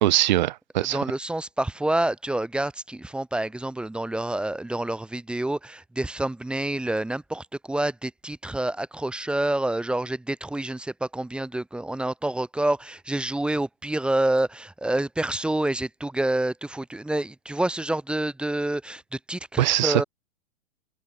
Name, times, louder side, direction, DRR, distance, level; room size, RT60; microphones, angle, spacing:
voice 1, 0.0-1.0 19.6-20.0, right 15 dB, 35° right, 0.6 m, -21 dB
voice 2, 0.8-20.0, right 1 dB, ahead, 2.0 m, -28 dB
open air
hypercardioid pair, 160°, 41 cm